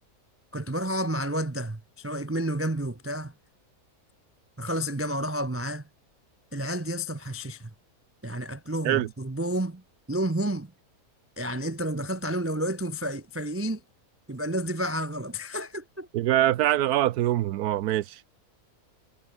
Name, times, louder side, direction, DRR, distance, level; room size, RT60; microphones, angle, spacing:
voice 1, 0.5-3.3 4.6-5.8 6.5-7.7 8.2-9.8 10.1-10.7 11.4-13.8 14.3-16.1, right 1 dB, 20° right, 0.4 m, -30 dB
voice 2, 16.1-18.2, right 13 dB, 85° right, 1.2 m, -24 dB
omnidirectional pair, 1.6 m